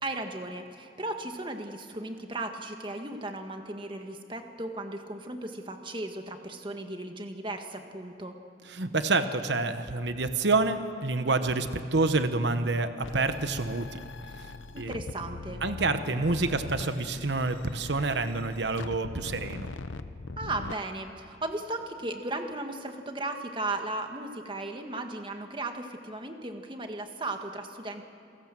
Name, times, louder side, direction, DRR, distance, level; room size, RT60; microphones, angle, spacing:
voice 1, 0.0-8.3 14.7-15.6 20.4-28.0, right 2 dB, 25° right, 5 dB, 1.7 m, -36 dB
voice 2, 8.7-14.0 14.8-15.0 15.6-19.7, right 3 dB, 65° right, 9 dB, 1.0 m, -28 dB
sound 1, 13.0-20.7, left 3 dB, 85° left, 0.8 m, -41 dB
29.0 x 18.0 x 7.6 m, 2.6 s
head